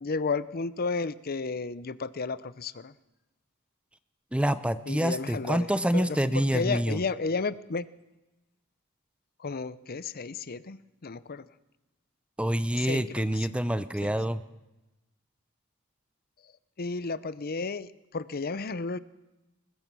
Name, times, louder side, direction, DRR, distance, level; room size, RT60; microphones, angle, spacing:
voice 1, 0.0-2.9 4.9-5.7 5.9-7.9 9.4-10.8 11.0-11.5 12.8-13.5 14.0-14.1 16.8-19.0, left 4 dB, 45° left, 16 dB, 0.7 m, -32 dB
voice 2, 4.3-7.0 12.4-14.4, equal, 5° right, 13 dB, 0.6 m, -27 dB
21.0 x 21.0 x 6.1 m, 1.0 s
head